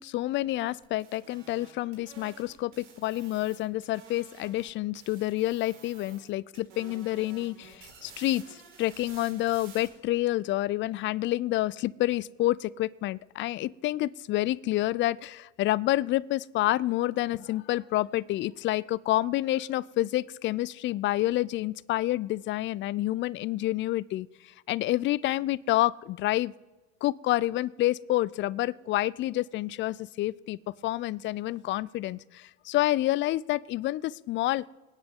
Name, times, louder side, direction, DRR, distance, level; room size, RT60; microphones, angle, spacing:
voice 1, 0.0-24.3 24.7-26.5 27.0-34.6, left 16 dB, 35° left, 23 dB, 0.4 m, -28 dB
sound 1, 0.8-4.7 4.9-6.3 6.5-9.9, right 6 dB, 65° right, 4.7 m, -52 dB
26.0 x 9.8 x 3.6 m, 1.2 s
hypercardioid pair, 75°, 37 cm